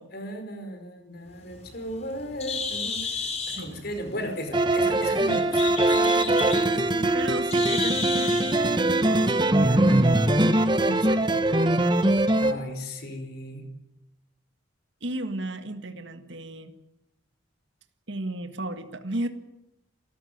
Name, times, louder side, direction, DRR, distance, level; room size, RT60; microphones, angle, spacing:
voice 1, 0.1-3.2 3.5-7.1 12.4-13.6, equal, 50° left, 6 dB, 5.1 m, -36 dB
Bird, 1.3-8.6, left 5 dB, 35° left, 3.7 m, -33 dB
voice 2, 3.5-3.8 7.1-11.8 15.0-16.7 18.1-19.3, right 1 dB, 65° right, 8 dB, 1.8 m, -35 dB
sound 1, 4.5-12.6, right 1 dB, 25° right, 1.3 m, -22 dB
28.0 x 14.0 x 9.4 m, 0.90 s
head